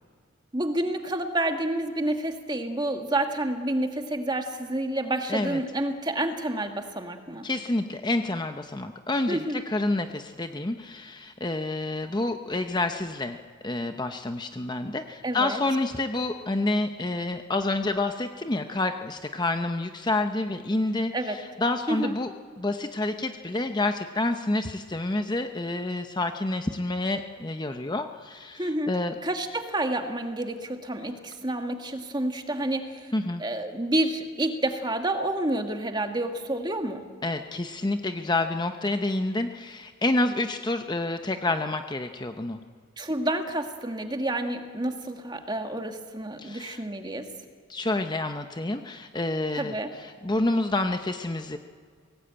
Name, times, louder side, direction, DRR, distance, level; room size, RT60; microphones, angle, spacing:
voice 1, 0.5-7.5 9.3-9.6 15.2-15.6 21.1-21.4 21.9-22.1 28.6-28.9 29.2-33.1 33.4-37.0 43.0-47.3 49.6-49.9, right 1 dB, 20° right, 5 dB, 1.7 m, -29 dB
voice 2, 5.3-5.6 7.4-13.4 13.6-29.2 33.1-33.4 37.2-42.6 46.4-46.8 47.7-51.6, left 2 dB, 20° left, 7 dB, 0.7 m, -28 dB
22.5 x 18.0 x 8.8 m, 2.1 s
head